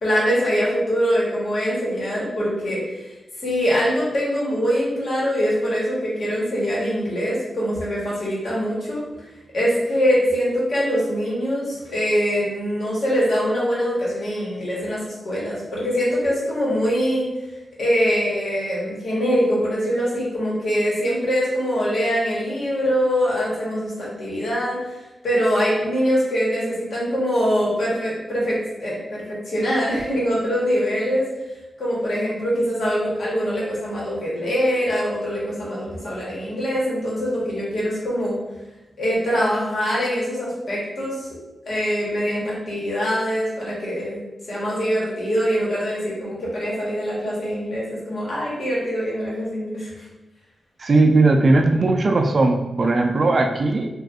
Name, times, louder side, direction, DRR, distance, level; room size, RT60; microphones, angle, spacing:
voice 1, 0.0-3.1 3.4-9.3 9.5-17.3 17.8-25.0 25.2-31.2 31.8-38.3 39.0-41.3 41.7-44.2 44.5-50.1, equal, 70° left, -6 dB, 1.2 m, -23 dB
voice 2, 50.8-53.9, right 2 dB, 50° right, 4 dB, 0.3 m, -18 dB
2.5 x 2.4 x 3.5 m, 1.0 s
wide cardioid pair, 90°, 0 cm